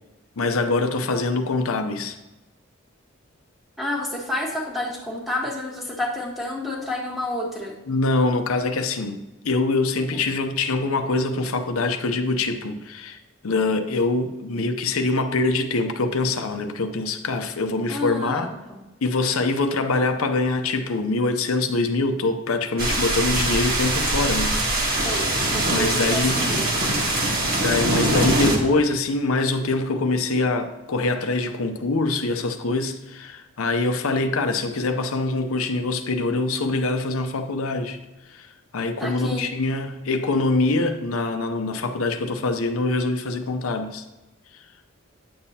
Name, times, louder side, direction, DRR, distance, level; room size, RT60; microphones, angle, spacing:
voice 1, 0.4-2.2 7.9-13.2 13.4-18.5 19.0-25.3 25.7-26.4 27.6-38.0 38.3-38.5 38.7-44.0, left 3 dB, 90° left, 7 dB, 0.7 m, -24 dB
voice 2, 3.8-7.7 10.1-10.2 17.9-18.8 25.0-27.1 39.0-39.5, left 1 dB, ahead, -2 dB, 1.3 m, -30 dB
sound 1, 22.8-28.6, right 1 dB, 45° right, 1.5 m, -23 dB
9.4 x 7.1 x 2.8 m, 1.1 s
head